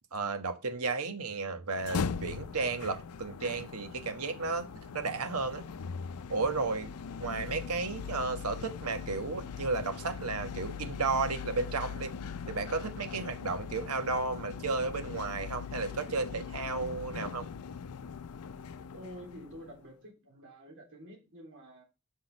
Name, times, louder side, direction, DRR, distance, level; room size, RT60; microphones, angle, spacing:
voice 1, 0.1-4.7 4.9-5.6 6.3-6.9 7.2-12.1 12.5-17.5, right 3 dB, 85° right, 1.3 m, -33 dB
sound 1, 1.7-19.8, left 6 dB, 85° left, 0.5 m, -40 dB
voice 2, 18.9-21.8, equal, 60° right, 3.5 m, -49 dB
6.1 x 6.1 x 5.9 m
head